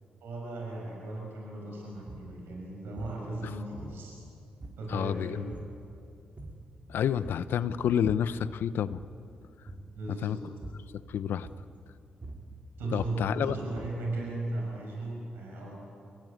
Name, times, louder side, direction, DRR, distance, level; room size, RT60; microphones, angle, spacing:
voice 1, 0.2-4.1 4.8-5.5 7.0-7.2 9.9-10.4 12.8-15.7, right 2 dB, 80° right, -2 dB, 5.9 m, -37 dB
sound 1, 2.1-2.3 3.0-3.3 3.8-4.3 4.6-5.1 5.5-5.8 6.2-6.7 7.2-7.5 7.8-8.4 8.8-9.2 9.7-10.0 10.6-11.0 11.4-11.8 12.1-14.1, right 2 dB, 40° right, 4.4 m, -45 dB
voice 2, 4.9-5.5 6.9-9.0 10.2-10.4 11.1-11.5 12.9-13.5, left 9 dB, 75° left, 15 dB, 0.7 m, -29 dB
25.5 x 18.5 x 9.5 m, 2.5 s
supercardioid pair, 45°, 4 cm